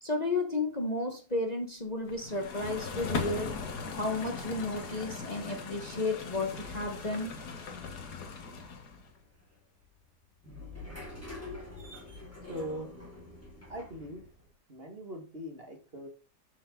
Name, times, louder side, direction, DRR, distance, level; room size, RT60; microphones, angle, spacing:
voice 1, 0.0-3.5 3.9-7.3, left 2 dB, 25° left, 3 dB, 1.4 m, -33 dB
sound 1, 2.1-9.1, left 5 dB, 80° left, 2.0 m, -39 dB
sound 2, 2.8-14.5, left 2 dB, 10° left, 3.0 m, -49 dB
voice 2, 12.5-12.9 13.7-14.2 14.7-16.1, equal, 35° right, 4 dB, 2.1 m, -40 dB
12.5 x 6.3 x 3.9 m, 0.33 s
omnidirectional pair, 1.7 m